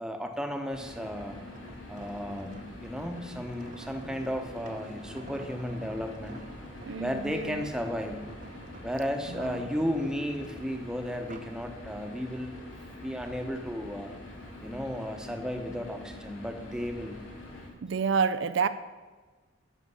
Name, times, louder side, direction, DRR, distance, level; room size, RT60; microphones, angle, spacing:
voice 1, 0.0-1.4 1.9-6.4 7.0-8.3 8.8-12.6 13.0-14.1 14.6-17.2, equal, 5° right, 5 dB, 1.0 m, -34 dB
sound 1, 0.7-17.7, left 2 dB, 90° left, 2.7 m, -45 dB
sound 2, 1.5-11.6 12.1-12.4, right 2 dB, 40° right, 0.8 m, -49 dB
voice 2, 6.8-7.7 9.3-9.7 17.8-18.7, right 5 dB, 65° right, 13 dB, 0.4 m, -29 dB
11.0 x 6.6 x 8.0 m, 1.4 s
head